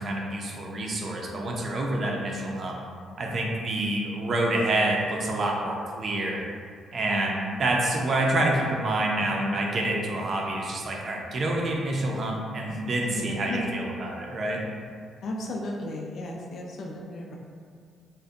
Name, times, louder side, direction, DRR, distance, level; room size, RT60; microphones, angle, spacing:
voice 1, 0.0-2.8 3.2-6.4 6.9-14.6, right 1 dB, 50° right, -1 dB, 0.4 m, -27 dB
voice 2, 12.7-13.7 15.2-17.3, left 1 dB, 65° left, -1 dB, 0.4 m, -34 dB
2.6 x 2.1 x 2.4 m, 2.1 s
cardioid pair, 90°, 0 cm